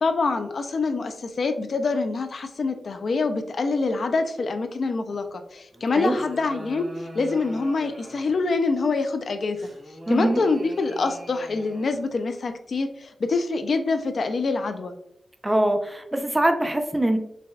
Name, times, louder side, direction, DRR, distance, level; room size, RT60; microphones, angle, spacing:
voice 1, 0.0-9.7 10.1-14.9, left 3 dB, 60° left, 7 dB, 0.3 m, -25 dB
sound 1, 5.7-8.5 9.6-12.2, equal, 40° right, 1.3 m, -43 dB
voice 2, 10.1-10.4 15.4-17.2, right 1 dB, 15° right, 6 dB, 0.5 m, -23 dB
5.8 x 2.2 x 2.3 m, 0.78 s
wide cardioid pair, 90°, 0 cm